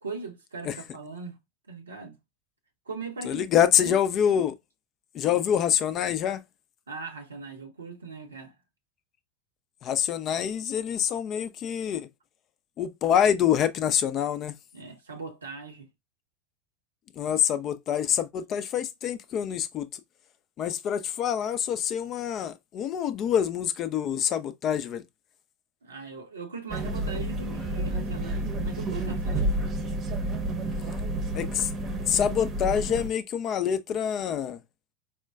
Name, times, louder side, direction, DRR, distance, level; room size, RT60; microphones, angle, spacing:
voice 1, 0.0-1.4 1.7-2.2 2.9-4.0 6.9-8.6 14.7-15.9 25.8-29.7, right 4 dB, 80° right, 0.7 m, -40 dB
voice 2, 3.2-4.6 5.1-6.4 9.8-12.1 12.8-14.5 17.2-20.0 20.6-25.0 31.3-31.7 32.1-34.6, left 9 dB, 40° left, 0.4 m, -26 dB
sound 1, 26.7-33.1, right 1 dB, 35° right, 0.7 m, -30 dB
4.3 x 2.2 x 2.3 m
figure-of-eight pair, 85°, 0 cm